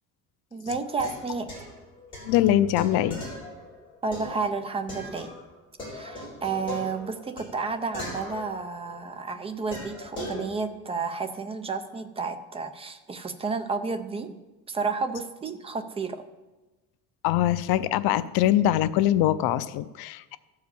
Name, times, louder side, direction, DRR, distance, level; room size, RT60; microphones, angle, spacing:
voice 1, 0.5-1.5 4.0-5.3 5.9-14.4 14.7-16.2, right 4 dB, 15° right, 8 dB, 0.5 m, -31 dB
sound 1, 0.9-5.5 5.8-9.1 9.7-10.4, left 1 dB, 15° left, 3.6 m, -39 dB
voice 2, 2.2-3.2 17.2-20.4, left 12 dB, 75° left, 15 dB, 0.5 m, -23 dB
14.0 x 4.8 x 6.9 m, 1.1 s
cardioid pair, 175°, 37 cm